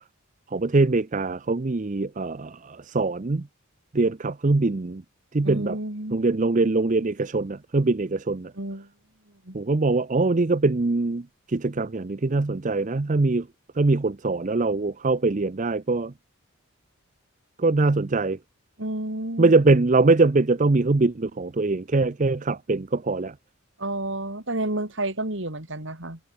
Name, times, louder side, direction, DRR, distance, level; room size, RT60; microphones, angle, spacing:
voice 1, 0.5-3.4 3.9-5.0 5.3-5.8 6.1-8.5 9.5-11.2 11.5-13.4 13.8-16.1 17.6-18.4 19.4-23.3, right 3 dB, 35° right, 0.6 m, -22 dB
voice 2, 5.4-6.2 8.6-8.9 9.5-9.6 18.8-19.5 23.8-26.2, right 1 dB, 55° right, 3.7 m, -30 dB
head